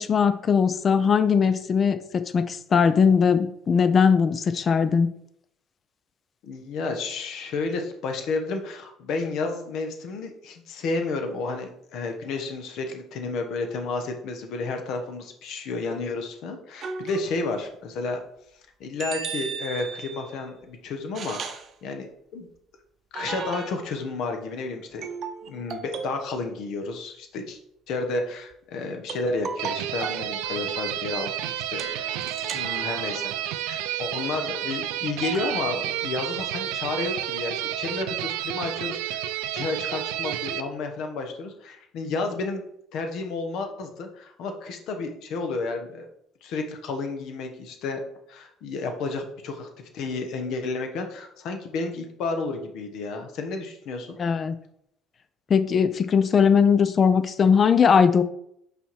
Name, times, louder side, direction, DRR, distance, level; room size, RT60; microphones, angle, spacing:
voice 1, 0.0-5.1 54.2-54.6 55.5-58.2, left 6 dB, 40° left, 12 dB, 0.5 m, -20 dB
voice 2, 6.4-18.2 18.8-22.1 22.3-22.5 23.1-25.1 25.4-27.6 27.9-31.8 32.5-39.2 39.5-42.6 42.9-46.1 46.4-48.0 48.3-54.2, left 3 dB, 60° left, 5 dB, 1.0 m, -31 dB
sound 1, 16.8-17.5 19.0-20.4 21.1-21.7 23.1-24.0 25.0-26.3 29.1-30.3 31.8-33.5 35.2-35.6, right 6 dB, 50° right, 0.7 m, -35 dB
sound 2, 29.6-40.6, right 12 dB, 70° right, 0.4 m, -31 dB
5.5 x 4.3 x 4.6 m, 0.73 s
hypercardioid pair, 55°, 0 cm